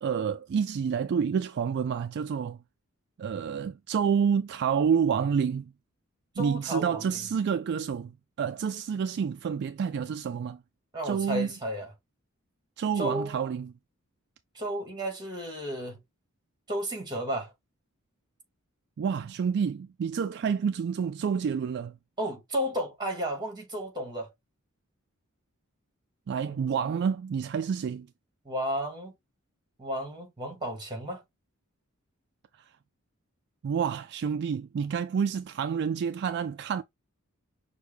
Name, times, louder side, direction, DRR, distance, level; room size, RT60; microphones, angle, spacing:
voice 1, 0.0-2.6 3.2-5.7 6.4-8.1 8.4-10.6 11.0-11.5 12.8-13.7 19.0-22.0 26.3-28.1 33.6-36.8, right 7 dB, 50° right, 0.3 m, -28 dB
voice 2, 6.4-7.0 10.9-11.9 13.0-13.4 14.6-16.0 16.7-17.5 22.2-24.3 26.5-26.6 28.5-29.1 29.8-31.2, equal, 20° right, 1.9 m, -33 dB
6.3 x 2.2 x 3.3 m
head